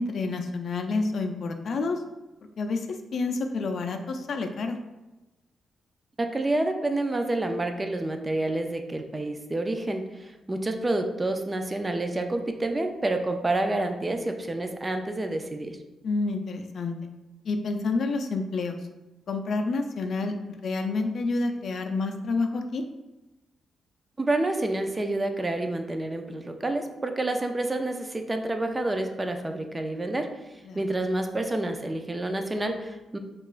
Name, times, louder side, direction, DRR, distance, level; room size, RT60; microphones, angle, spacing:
voice 1, 0.0-2.0 2.6-2.9 3.1-4.8 16.0-17.0 17.5-18.8 19.3-22.8 30.6-30.8, left 3 dB, 60° left, 5 dB, 0.4 m, -29 dB
voice 2, 6.2-10.0 10.5-15.8 24.2-30.3 30.7-33.2, right 2 dB, 20° right, 6 dB, 0.3 m, -28 dB
4.6 x 2.4 x 2.4 m, 1.0 s
cardioid pair, 95°, 0 cm